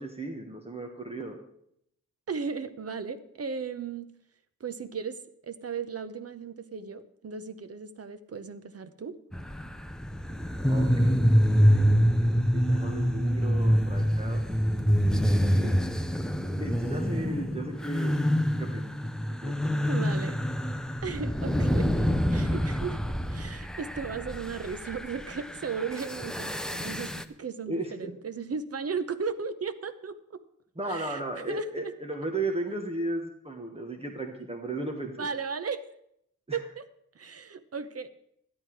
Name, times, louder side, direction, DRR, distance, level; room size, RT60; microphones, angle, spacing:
voice 1, 0.0-1.4 10.6-11.2 11.5-14.4 15.6-15.8 16.1-16.2 16.6-18.3 18.6-18.8 19.3-19.9 27.7-28.1 30.8-35.3 36.5-36.6, right 2 dB, 20° right, 3 dB, 1.2 m, -36 dB
voice 2, 2.3-4.1 4.6-9.1 19.9-20.4 21.0-21.9 22.3-23.0 23.3-30.4 30.9-31.9 35.2-35.8 36.5-36.9 37.1-38.1, right 5 dB, 45° right, 11 dB, 0.8 m, -36 dB
sound 1, 9.3-27.2, equal, ahead, 0.5 m, -26 dB
12.0 x 11.0 x 4.6 m, 0.73 s
wide cardioid pair, 160°, 33 cm